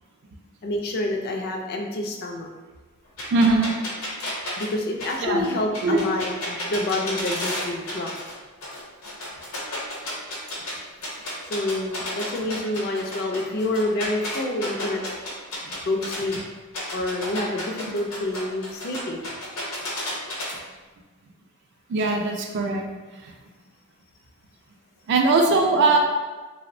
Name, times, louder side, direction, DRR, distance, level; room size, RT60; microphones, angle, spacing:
voice 1, 0.6-2.5 4.6-8.1 11.5-15.0 15.8-16.4 16.9-19.2, left 1 dB, 45° left, 2 dB, 0.3 m, -27 dB
sound 1, 3.2-8.3 8.6-10.7 11.0-16.4 16.7-20.5, left 1 dB, 80° left, 0.7 m, -32 dB
voice 2, 3.3-3.7 5.2-5.5 5.8-6.0 21.9-22.8 23.2-23.3 25.1-26.0, right 3 dB, 55° right, 2 dB, 0.4 m, -20 dB
2.8 x 2.0 x 2.5 m, 1.3 s
head